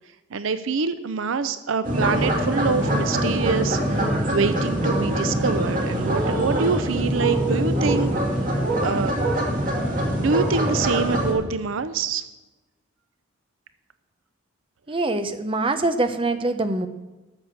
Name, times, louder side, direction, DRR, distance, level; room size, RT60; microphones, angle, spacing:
voice 1, 0.3-8.1 8.8-9.1 10.2-12.2, right 5 dB, 85° right, 12 dB, 0.5 m, -25 dB
sound 1, 1.8-11.3, right 1 dB, 40° right, 2.4 m, -23 dB
voice 2, 14.9-16.9, right 2 dB, 25° right, 9 dB, 0.8 m, -24 dB
13.0 x 6.5 x 7.1 m, 1.1 s
head